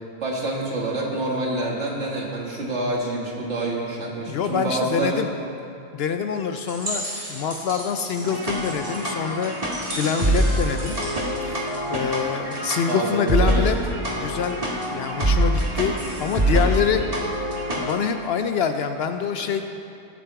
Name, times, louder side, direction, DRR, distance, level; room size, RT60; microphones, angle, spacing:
voice 1, 0.2-5.3 12.9-13.7 19.4-19.5, right 2 dB, 65° right, -2 dB, 2.1 m, -27 dB
voice 2, 4.3-5.3 5.9-7.0 7.3-9.5 9.9-11.0 11.4-11.6 11.9-13.8 14.1-14.6 14.9-17.0 17.8-19.6, left 7 dB, 65° left, 7 dB, 0.7 m, -25 dB
sound 1, 6.6-12.2, right 1 dB, 85° right, 3.7 m, -36 dB
sound 2, 8.2-17.9, right 1 dB, 30° right, 1.9 m, -25 dB
18.0 x 6.7 x 4.7 m, 2.7 s
omnidirectional pair, 1.3 m